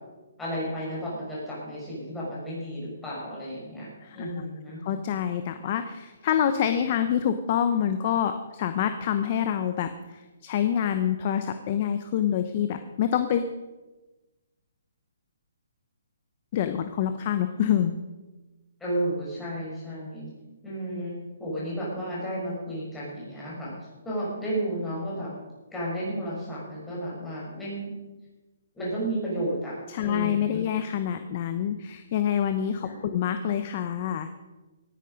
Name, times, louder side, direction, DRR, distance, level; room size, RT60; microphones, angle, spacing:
voice 1, 0.4-3.9 4.1-4.8 18.8-20.3 20.6-23.7 24.0-25.3 25.7-27.9 28.7-30.6 32.8-33.1, right 1 dB, 5° left, -7 dB, 5.5 m, -32 dB
voice 2, 4.0-4.5 4.8-13.5 16.5-18.0 29.9-34.3, left 9 dB, 35° left, 9 dB, 0.8 m, -26 dB
18.0 x 10.0 x 5.2 m, 1.2 s
hypercardioid pair, 165°, 0 cm